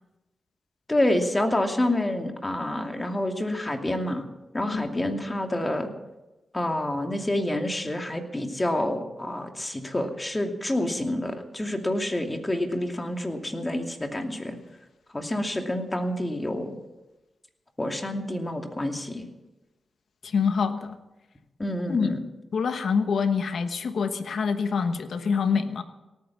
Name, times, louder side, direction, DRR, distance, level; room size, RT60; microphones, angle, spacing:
voice 1, 0.9-4.3 4.5-5.9 6.5-14.6 15.1-16.8 17.8-19.3 21.6-22.2, left 1 dB, 20° left, 4 dB, 2.5 m, -28 dB
voice 2, 20.2-20.9 21.9-22.1 22.5-25.8, left 5 dB, 75° left, 9 dB, 1.2 m, -25 dB
18.0 x 9.5 x 7.3 m, 1.0 s
cardioid pair, 55°, 0 cm